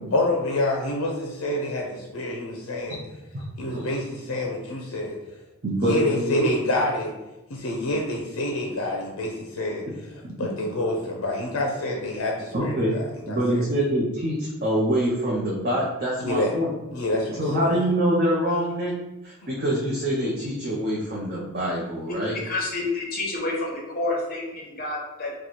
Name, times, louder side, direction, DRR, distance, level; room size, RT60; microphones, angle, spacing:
voice 1, 0.1-3.0 3.6-5.2 5.8-7.1 7.5-12.7 13.3-13.6 16.2-16.5 16.9-17.6, left 1 dB, 75° left, 0 dB, 0.5 m, -27 dB
voice 2, 5.6-6.5 10.2-10.5 12.5-13.0 13.3-16.7 17.4-18.9 19.2-22.4, equal, 45° right, -5 dB, 0.6 m, -25 dB
voice 3, 22.4-25.3, left 2 dB, 45° left, -2 dB, 0.9 m, -29 dB
3.0 x 2.2 x 4.0 m, 1.0 s
head